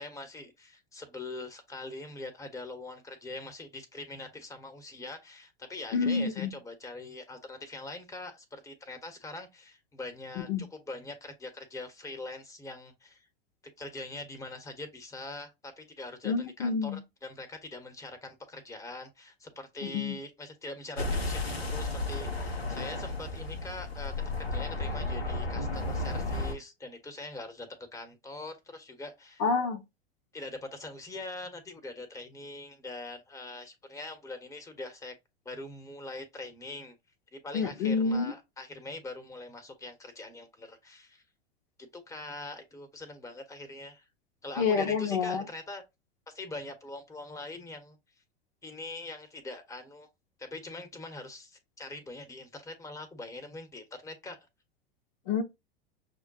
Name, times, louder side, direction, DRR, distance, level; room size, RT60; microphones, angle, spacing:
voice 1, 0.0-13.3 13.8-29.4 30.3-35.1 35.4-36.9 37.3-41.2 41.8-44.1 44.4-45.8 46.3-48.0 48.6-50.1 50.4-54.4, left 2 dB, 10° left, 1.1 m, -43 dB
voice 2, 5.9-6.5 10.5-10.6 16.2-17.0 19.8-20.2 29.4-29.8 37.5-38.3 44.6-45.4 55.3-55.4, left 5 dB, 50° left, 0.8 m, -28 dB
sound 1, 21.0-26.6, left 2 dB, 85° left, 0.8 m, -33 dB
6.4 x 2.2 x 2.7 m
figure-of-eight pair, 85°, 30 cm